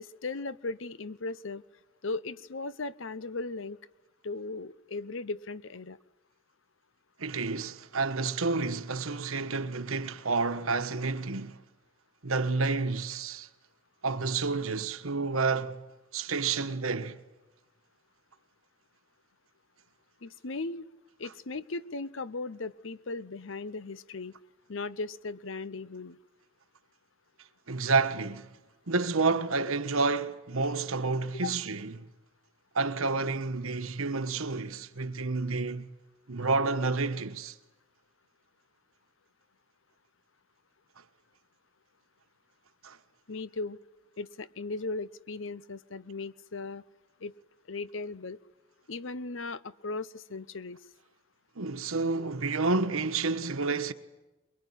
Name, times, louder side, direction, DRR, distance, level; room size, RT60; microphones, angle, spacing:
voice 1, 0.0-1.6 2.0-3.8 4.2-6.0 20.2-20.9 21.2-24.3 24.7-26.2 31.4-31.5 43.3-43.8 44.2-46.8 47.2-47.3 47.7-48.4 48.9-50.8, left 3 dB, 60° left, 0.8 m, -37 dB
voice 2, 7.2-11.6 12.2-13.5 14.0-15.8 16.1-17.2 27.7-28.6 28.9-32.1 32.7-35.9 36.3-37.5 42.8-43.0 51.6-53.9, right 4 dB, 75° right, 1.3 m, -29 dB
23.0 x 22.5 x 10.0 m
head